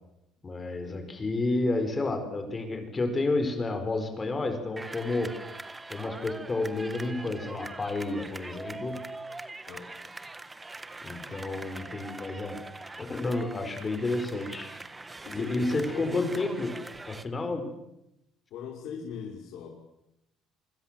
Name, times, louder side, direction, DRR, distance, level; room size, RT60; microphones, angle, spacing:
voice 1, 0.4-5.3 5.9-9.0 11.0-12.6 13.0-14.7 15.3-16.8 17.1-17.7, left 2 dB, 20° left, 7 dB, 4.8 m, -30 dB
sound 1, 4.8-17.2, right 2 dB, 10° right, 1.4 m, -43 dB
voice 2, 15.3-16.4 18.5-19.7, left 7 dB, 65° left, -1 dB, 5.5 m, -41 dB
27.5 x 25.5 x 7.6 m, 0.86 s
cardioid pair, 160°, 0 cm